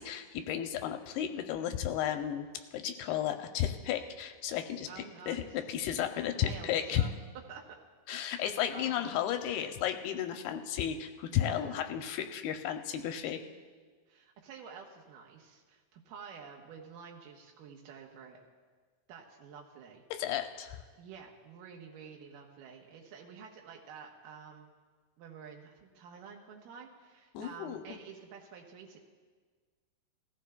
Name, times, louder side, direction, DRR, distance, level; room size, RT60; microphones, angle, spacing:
voice 1, 0.0-7.1 8.1-13.4 20.1-20.8 27.3-28.0, left 10 dB, 85° left, 6 dB, 2.4 m, -33 dB
voice 2, 4.9-5.6 6.2-7.1 7.5-7.8 8.1-8.4 8.7-9.2 11.3-11.8 14.1-18.4 19.1-20.0 21.0-24.7 25.2-29.0, right 6 dB, 75° right, 0 dB, 2.0 m, -50 dB
21.0 x 15.0 x 2.2 m, 1.5 s
omnidirectional pair, 4.8 m